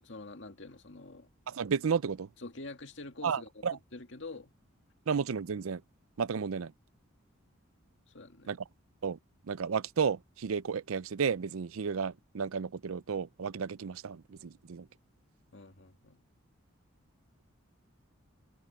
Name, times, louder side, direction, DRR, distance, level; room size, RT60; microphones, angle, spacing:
voice 1, 0.0-1.3 2.4-4.5 8.1-8.5 15.5-16.2, left 2 dB, 60° left, 2.2 m, -46 dB
voice 2, 1.5-2.3 3.2-3.8 5.1-5.8 6.2-6.7 8.5-8.6 9.0-9.2 9.5-14.9, right 6 dB, 85° right, 0.5 m, -32 dB
head